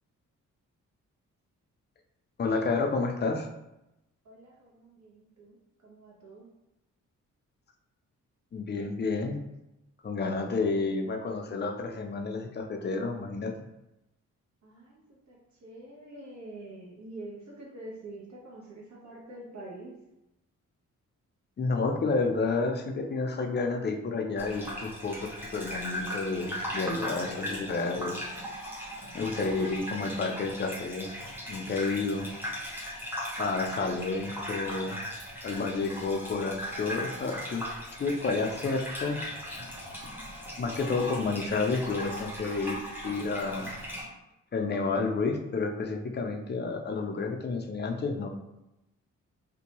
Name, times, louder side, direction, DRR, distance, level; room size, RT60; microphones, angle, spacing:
voice 1, 2.4-3.5 8.5-9.4 10.0-13.5 21.6-28.2 29.1-31.1 31.5-32.3 33.4-35.0 35.4-37.7 38.0-39.2 40.6-42.8 43.0-43.7 44.5-48.3, left 3 dB, 35° left, 4 dB, 0.5 m, -30 dB
voice 2, 4.2-6.5 14.6-15.0 15.3-19.9, right 2 dB, 60° right, -3 dB, 1.0 m, -46 dB
Gurgling / Bathtub (filling or washing), 24.4-44.0, equal, 5° right, 0.8 m, -38 dB
2.6 x 2.2 x 2.9 m, 0.92 s
cardioid pair, 65°, 32 cm